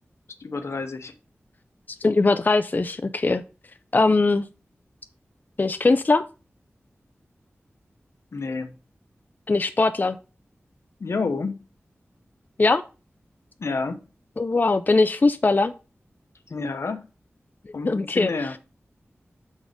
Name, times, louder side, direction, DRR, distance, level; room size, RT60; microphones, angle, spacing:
voice 1, 0.4-1.1 8.3-8.7 11.0-11.6 13.6-14.0 16.5-17.0 17.7-18.6, left 4 dB, 75° left, 0.8 m, -29 dB
voice 2, 2.0-3.4 3.9-4.5 5.6-6.2 9.5-10.2 12.6-12.8 14.4-15.7 17.8-18.3, left 3 dB, 40° left, 0.4 m, -20 dB
6.1 x 4.1 x 5.0 m
wide cardioid pair, 70°, 5 cm